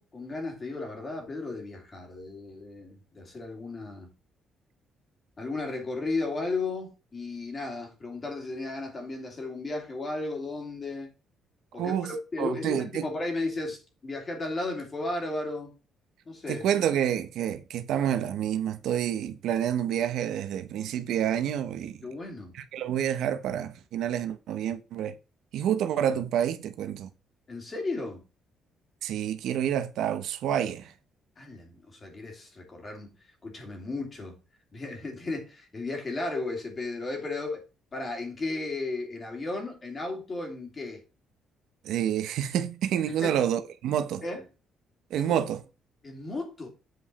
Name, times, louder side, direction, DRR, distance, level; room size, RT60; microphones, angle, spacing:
voice 1, 0.0-4.1 5.4-11.1 11.7-15.7 16.2-16.6 22.0-22.5 26.1-26.2 27.5-28.2 31.4-33.1 33.4-34.4 34.7-37.6 37.9-41.0 43.1-43.4 44.2-44.4 45.2-45.4 46.0-46.7, left 2 dB, 25° left, 3.0 m, -34 dB
voice 2, 11.8-12.1 12.4-13.1 16.5-22.0 22.5-25.2 25.5-27.1 29.0-30.9 41.8-44.2 45.1-45.6, right 10 dB, 75° right, 0.9 m, -28 dB
7.9 x 5.1 x 4.1 m
cardioid pair, 155°, 0 cm